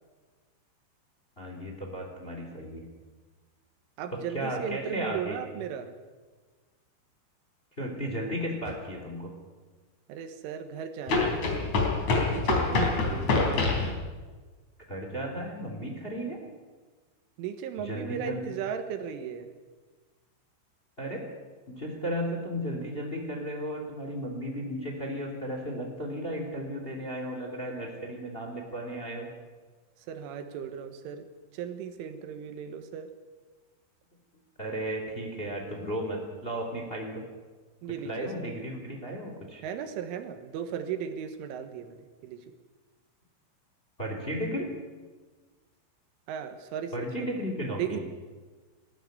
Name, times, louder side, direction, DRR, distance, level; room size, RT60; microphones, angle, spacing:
voice 1, 1.4-2.8 4.3-5.4 7.8-9.3 14.9-16.4 17.8-18.4 21.0-21.2 21.8-29.3 34.6-37.2 38.0-39.6 44.0-44.7 46.9-48.0, equal, 15° left, 2 dB, 2.5 m, -34 dB
voice 2, 4.0-6.0 10.1-11.7 12.3-13.6 17.4-19.5 30.0-31.3 31.5-33.1 37.8-38.3 39.6-42.5 46.3-47.1 47.8-48.0, right 8 dB, 85° right, 8 dB, 3.9 m, -36 dB
sound 1, 8.7-8.8 11.1-13.9, left 3 dB, 40° left, 4.3 m, -26 dB
20.5 x 14.0 x 9.6 m, 1.4 s
omnidirectional pair, 5.6 m